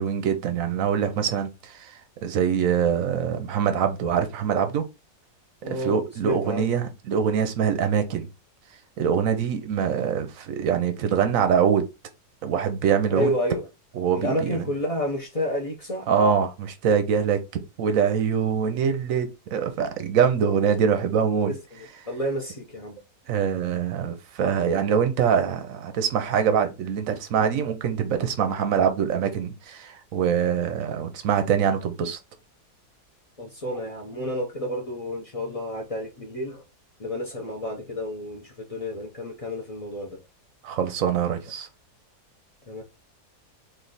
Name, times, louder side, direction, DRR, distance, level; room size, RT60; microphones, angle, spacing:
voice 1, 0.0-4.8 5.7-8.3 9.0-11.9 12.4-13.3 14.0-14.6 16.1-21.5 23.3-32.2 40.6-41.7, right 7 dB, 65° right, 0.9 m, -24 dB
voice 2, 5.6-6.8 13.1-13.7 14.2-16.1 21.5-21.6 22.1-23.0 33.4-36.6 37.0-40.2 42.7-42.8, equal, 50° left, 0.4 m, -30 dB
3.2 x 2.6 x 3.9 m
omnidirectional pair, 1.7 m